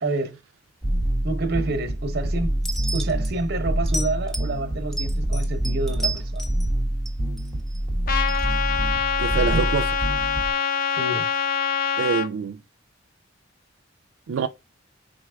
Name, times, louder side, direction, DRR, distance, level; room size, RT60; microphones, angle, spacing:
voice 1, 0.0-0.4 1.2-2.5 2.9-6.4 10.9-11.3, right 2 dB, 55° right, 0.8 m, -28 dB
sound 1, 0.8-10.5, right 1 dB, 20° left, 1.1 m, -26 dB
sound 2, 2.6-3.3 3.9-4.5 4.9-6.7 7.1-7.8 8.3-8.5, right 2 dB, ahead, 0.8 m, -32 dB
Trumpet, 8.1-12.3, left 7 dB, 45° left, 0.5 m, -25 dB
voice 2, 9.2-10.0 12.0-12.6 14.3-14.5, right 6 dB, 80° right, 0.4 m, -25 dB
4.6 x 3.8 x 2.2 m
head